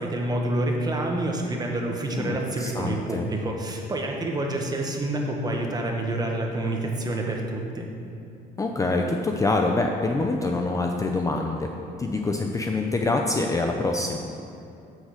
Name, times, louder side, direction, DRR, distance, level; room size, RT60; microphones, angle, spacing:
voice 1, 0.0-7.9, right 1 dB, 25° right, 1 dB, 1.2 m, -28 dB
voice 2, 2.2-3.3 8.6-11.7 12.0-14.2, left 2 dB, 20° left, 2 dB, 0.5 m, -25 dB
7.7 x 6.4 x 4.9 m, 2.6 s
cardioid pair, 110°, 17 cm